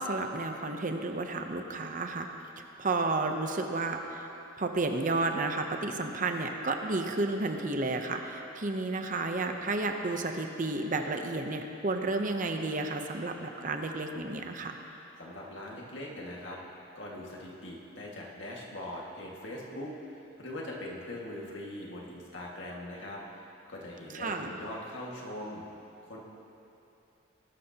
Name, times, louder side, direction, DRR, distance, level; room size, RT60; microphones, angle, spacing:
voice 1, 0.0-2.3 2.8-4.3 4.6-14.8 24.1-24.6, right 3 dB, 40° right, 4 dB, 0.7 m, -32 dB
voice 2, 15.2-16.6 16.9-25.6 26.0-26.2, left 1 dB, 60° left, -3 dB, 1.9 m, -41 dB
19.5 x 12.5 x 2.9 m, 2.9 s
head